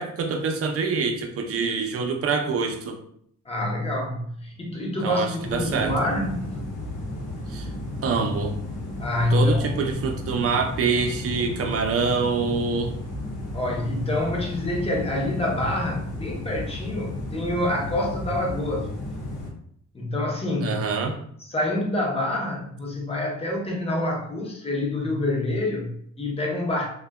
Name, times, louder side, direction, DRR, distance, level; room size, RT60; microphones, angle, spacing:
voice 1, 0.0-3.0 5.0-5.9 7.5-7.7 8.0-8.5 9.3-12.9 20.6-21.2, right 4 dB, 50° right, 3 dB, 0.5 m, -25 dB
voice 2, 3.5-6.6 9.0-9.8 13.5-18.9 19.9-20.8 21.4-26.9, left 1 dB, 20° left, -1 dB, 0.7 m, -27 dB
sound 1, 5.4-19.5, left 1 dB, 80° left, 0.8 m, -33 dB
2.6 x 2.2 x 2.2 m, 0.65 s
cardioid pair, 90°, 30 cm